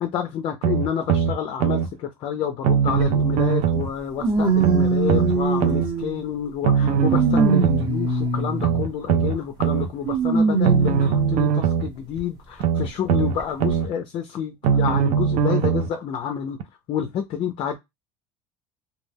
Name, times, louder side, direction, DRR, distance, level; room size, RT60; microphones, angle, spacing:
voice 1, 0.0-16.6 16.9-17.8, left 8 dB, 35° left, 0.4 m, -29 dB
sound 1, 0.6-1.9 2.6-3.9 4.6-5.9 6.6-7.9 8.6-9.9 10.6-11.9 12.6-13.9 14.6-15.9 16.6-16.7, right 7 dB, 55° right, 0.4 m, -21 dB
sound 2, 3.0-3.1 4.2-6.3 6.8-8.9 10.0-11.5 12.2-12.3 13.4-13.5, right 3 dB, 30° right, 0.8 m, -22 dB
2.2 x 2.1 x 3.3 m
cardioid pair, 160°, 14 cm